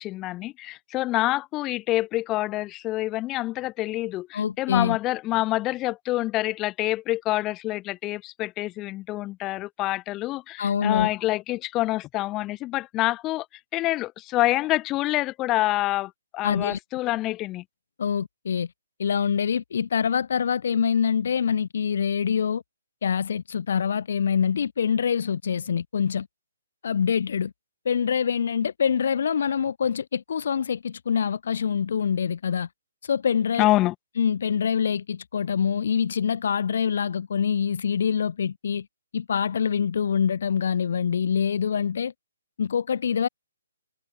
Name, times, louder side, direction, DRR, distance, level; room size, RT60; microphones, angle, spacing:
voice 1, 0.0-13.5 13.7-17.6 33.6-33.9, left 17 dB, 20° left, 6.1 m, -27 dB
voice 2, 4.3-5.0 10.6-11.1 16.4-16.8 18.0-18.7 19.0-22.6 23.0-26.3 26.8-27.5 27.9-32.7 33.0-33.7 34.2-38.9 39.1-42.1 42.6-43.3, left 7 dB, 60° left, 2.1 m, -25 dB
figure-of-eight pair, 135°, 0 cm